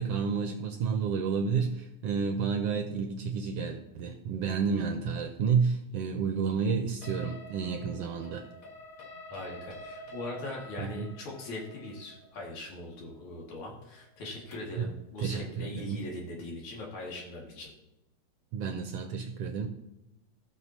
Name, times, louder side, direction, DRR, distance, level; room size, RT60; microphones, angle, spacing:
voice 1, 0.0-8.4 10.8-11.1 14.8-14.9 15.2-16.0 18.5-19.7, right 6 dB, 75° right, 5 dB, 1.5 m, -30 dB
sound 1, 7.0-14.8, equal, 60° left, 0.9 m, -48 dB
voice 2, 9.3-17.7, left 1 dB, 85° left, -2 dB, 3.4 m, -41 dB
16.5 x 6.2 x 2.8 m, 0.93 s
omnidirectional pair, 3.3 m